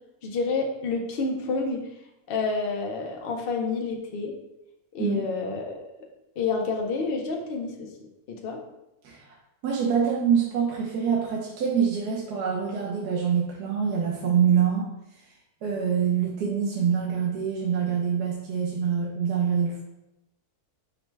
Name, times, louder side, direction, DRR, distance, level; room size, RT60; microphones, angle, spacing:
voice 1, 0.2-1.9 2.3-4.3 4.9-5.9 6.4-7.9 8.3-8.6, left 4 dB, 75° left, 1 dB, 0.5 m, -29 dB
voice 2, 9.6-14.9 15.6-19.8, right 7 dB, 80° right, -3 dB, 1.3 m, -25 dB
5.2 x 2.2 x 4.4 m, 0.91 s
omnidirectional pair, 1.7 m